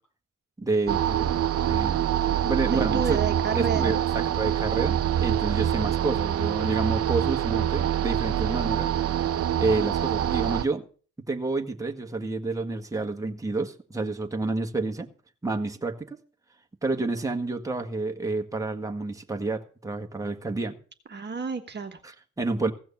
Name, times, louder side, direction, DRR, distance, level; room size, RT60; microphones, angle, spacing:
voice 1, 0.6-1.4 1.6-3.2 3.5-8.9 9.6-10.8 11.3-15.1 15.4-16.2 16.8-20.8 22.0-22.7, right 3 dB, 10° right, 1.5 m, -29 dB
sound 1, 0.9-10.6, right 10 dB, 50° right, 0.8 m, -25 dB
voice 2, 2.7-4.5 21.1-22.0, right 5 dB, 35° right, 1.4 m, -31 dB
16.0 x 6.2 x 7.2 m
cardioid pair, 90°, 30 cm